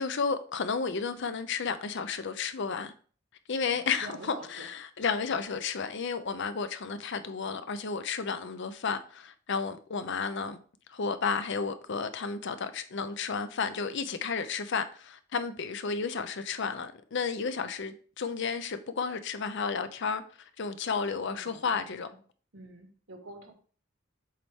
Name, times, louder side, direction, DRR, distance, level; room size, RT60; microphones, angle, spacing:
voice 1, 0.0-2.9 3.5-10.6 10.9-22.1, left 5 dB, 60° left, 0.6 m, -32 dB
voice 2, 3.7-4.7 21.3-22.2 22.5-23.5, right 2 dB, 75° right, 1.6 m, -47 dB
7.4 x 4.1 x 3.6 m
head